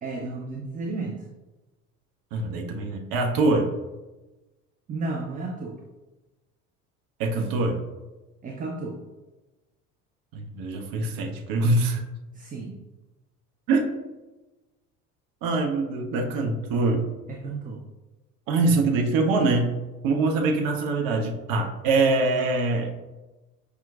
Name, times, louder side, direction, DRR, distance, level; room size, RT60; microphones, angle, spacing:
voice 1, 0.0-1.2 4.9-5.8 8.4-9.0 12.3-12.8 17.3-17.8, right 3 dB, 20° right, 0 dB, 0.4 m, -33 dB
voice 2, 2.3-3.7 7.2-7.8 10.3-12.0 13.7-13.9 15.4-17.1 18.5-19.7 20.0-22.9, right 3 dB, 55° right, 2 dB, 0.7 m, -24 dB
5.6 x 2.2 x 2.3 m, 1.1 s
hypercardioid pair, 65°, 43 cm